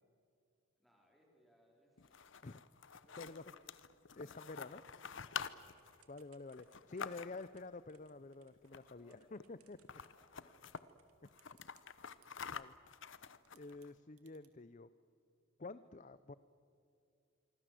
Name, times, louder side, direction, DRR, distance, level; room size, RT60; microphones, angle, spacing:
voice 1, 0.7-2.2 3.0-3.6 4.3-5.6 8.8-9.5 10.0-11.5 13.9-14.0, equal, ahead, -1 dB, 4.5 m, -71 dB
sound 1, 2.0-7.6 8.6-9.1 9.4-9.5 9.7-10.8 11.2-13.9, left 6 dB, 60° left, 0.9 m, -48 dB
voice 2, 4.2-4.8 6.1-9.8 12.5-12.7 13.2-13.3 13.5-14.9 15.6-16.3, left 3 dB, 35° left, 14 dB, 0.5 m, -49 dB
Typing / Telephone, 5.8-12.3 13.1-13.2 13.4-14.5, right 11 dB, 90° right, 2.2 m, -73 dB
26.5 x 24.5 x 7.7 m, 2.5 s
head